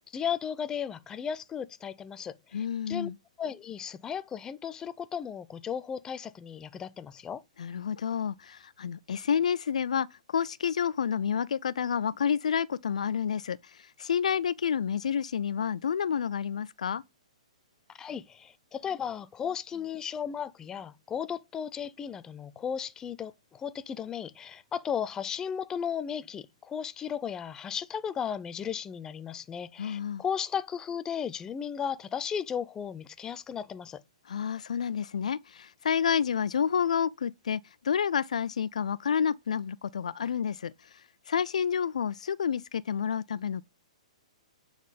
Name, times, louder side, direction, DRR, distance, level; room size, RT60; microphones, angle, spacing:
voice 1, 0.1-3.1 3.4-7.4 17.9-34.0, left 8 dB, 15° left, 0.6 m, -35 dB
voice 2, 2.5-3.1 7.6-17.0 29.8-30.2 34.3-41.0 41.3-43.6, left 7 dB, 70° left, 0.4 m, -29 dB
9.6 x 4.0 x 5.1 m
hypercardioid pair, 125°, 4 cm